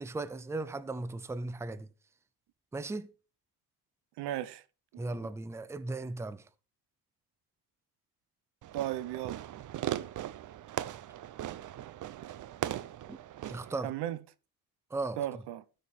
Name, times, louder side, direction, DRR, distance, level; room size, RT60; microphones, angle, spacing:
voice 1, 0.0-1.9 2.7-3.1 5.0-6.4 13.1-13.2 13.5-13.9 14.9-15.2, right 2 dB, 5° right, 0.5 m, -37 dB
voice 2, 4.2-4.6 5.0-5.2 8.7-9.5 13.8-14.2 15.2-15.6, right 12 dB, 80° right, 0.8 m, -35 dB
Fireworks, 8.6-13.8, right 12 dB, 50° right, 0.6 m, -39 dB
12.5 x 5.4 x 4.3 m
cardioid pair, 105°, 39 cm